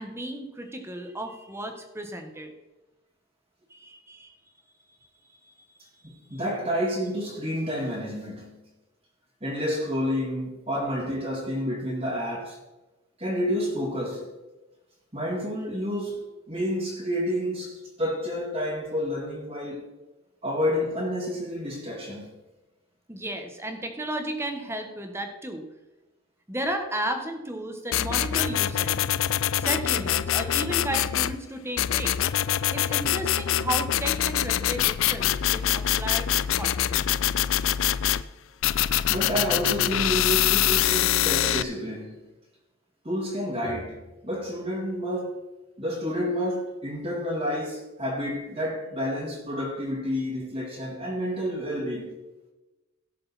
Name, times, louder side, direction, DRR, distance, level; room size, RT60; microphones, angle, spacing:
voice 1, 0.0-2.5 3.7-4.4 5.3-5.5 6.3-6.4 23.1-25.6 26.5-29.0 29.5-32.3 32.7-37.0, right 1 dB, 10° right, 1.3 m, -34 dB
voice 2, 6.0-8.6 9.4-12.6 13.2-14.3 15.1-19.9 20.4-22.3 39.1-42.2 43.0-45.4 45.8-52.2, equal, 30° right, 2.1 m, -29 dB
sound 1, 27.9-31.4 31.8-38.2 38.6-41.6, left 11 dB, 70° left, 0.4 m, -24 dB
17.0 x 6.6 x 4.2 m
head